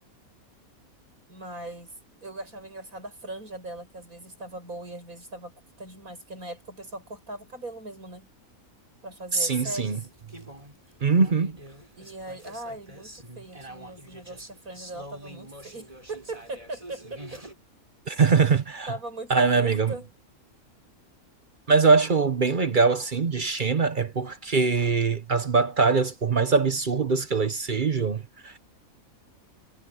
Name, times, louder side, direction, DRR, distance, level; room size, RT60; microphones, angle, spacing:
voice 1, 1.3-5.5 5.8-8.3 9.0-10.1 12.0-17.4 18.1-18.2 18.9-20.1, right 2 dB, 75° right, 7.9 m, -40 dB
voice 2, 9.3-10.0 11.0-11.6 18.1-18.9 19.3-19.9 21.7-28.6, right 4 dB, 40° right, 0.9 m, -22 dB
sound 1, 9.5-17.5, right 1 dB, 25° right, 6.0 m, -46 dB
omnidirectional pair, 1.5 m